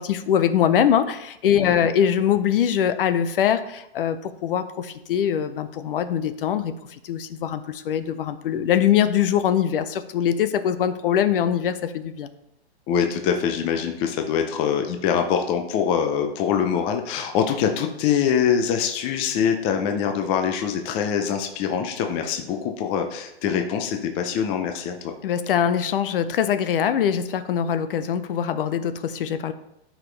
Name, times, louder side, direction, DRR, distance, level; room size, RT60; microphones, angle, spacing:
voice 1, 0.0-12.3 25.2-29.5, left 9 dB, 55° left, 12 dB, 0.7 m, -23 dB
voice 2, 12.9-25.1, left 7 dB, 20° left, 5 dB, 0.5 m, -24 dB
12.0 x 5.0 x 3.3 m, 0.85 s
hypercardioid pair, 145°, 33 cm